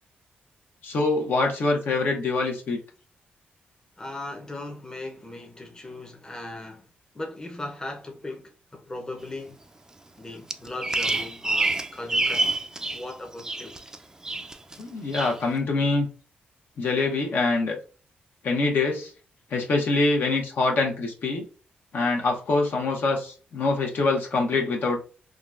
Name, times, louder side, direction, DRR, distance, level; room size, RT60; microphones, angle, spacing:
voice 1, 0.8-2.8 14.8-16.1 16.8-17.8 18.4-19.1 19.5-21.4 21.9-25.0, left 3 dB, 70° left, 0.9 m, -24 dB
voice 2, 4.0-6.9 7.1-9.6 10.2-12.6 12.9-13.8, left 2 dB, 20° left, 0.7 m, -38 dB
Bird vocalization bird call bird song, 10.5-13.0 13.3-14.0 14.2-14.8 15.1-15.4, right 2 dB, 15° right, 0.4 m, -27 dB
3.7 x 2.2 x 2.4 m
cardioid pair, 80°, 4 cm